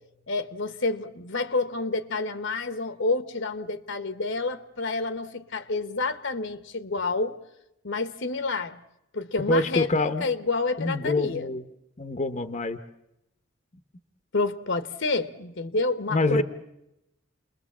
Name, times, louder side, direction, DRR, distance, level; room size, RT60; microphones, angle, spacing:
voice 1, 0.3-7.4 7.8-8.8 9.1-11.5 14.3-16.4, left 3 dB, 65° left, 12 dB, 1.1 m, -29 dB
voice 2, 9.5-10.3 10.8-11.6 12.0-12.8 16.1-16.4, left 2 dB, 35° left, 10 dB, 0.9 m, -25 dB
29.5 x 21.5 x 7.2 m, 0.88 s
head